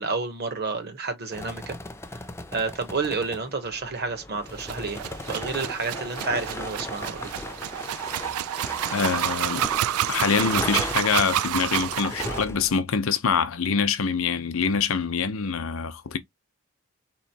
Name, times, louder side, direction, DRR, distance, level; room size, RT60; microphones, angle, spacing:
voice 1, 0.0-1.8 2.1-2.2 2.5-5.0 5.3-7.3, right 4 dB, 45° right, 0.8 m, -30 dB
sound 1, 1.3-12.8, left 2 dB, 10° left, 0.3 m, -38 dB
sound 2, 4.6-12.4, right 11 dB, 75° right, 0.3 m, -29 dB
voice 2, 8.9-9.7 10.1-16.2, left 5 dB, 65° left, 0.6 m, -25 dB
4.0 x 3.0 x 2.7 m
head